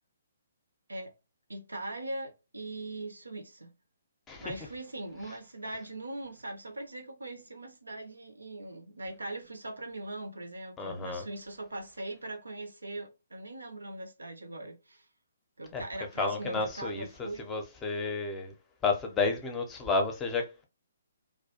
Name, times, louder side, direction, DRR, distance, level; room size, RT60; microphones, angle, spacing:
voice 1, 1.5-3.8 4.4-15.1 15.6-17.6, right 2 dB, 80° right, 0.6 m, -40 dB
voice 2, 10.8-11.2 15.7-15.8 16.2-18.5 18.8-20.6, left 3 dB, 15° left, 0.6 m, -31 dB
2.4 x 2.2 x 2.7 m
figure-of-eight pair, 135°, 0 cm